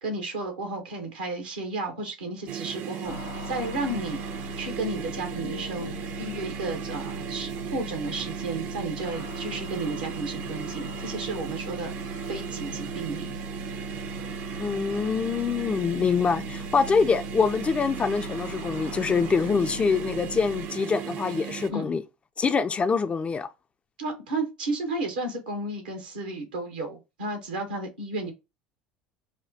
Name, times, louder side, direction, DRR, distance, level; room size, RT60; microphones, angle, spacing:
voice 1, 0.0-3.2 3.4-4.2 4.6-13.3 21.7-21.9 24.0-28.3, right 2 dB, 80° right, 1.3 m, -33 dB
sound 1, 2.5-21.7, right 9 dB, 55° right, 0.7 m, -36 dB
sound 2, 3.0-20.7, left 4 dB, 80° left, 0.7 m, -40 dB
voice 2, 14.6-22.0 22.4-23.5, left 5 dB, 25° left, 0.4 m, -25 dB
5.0 x 2.2 x 2.7 m
hypercardioid pair, 70°, 4 cm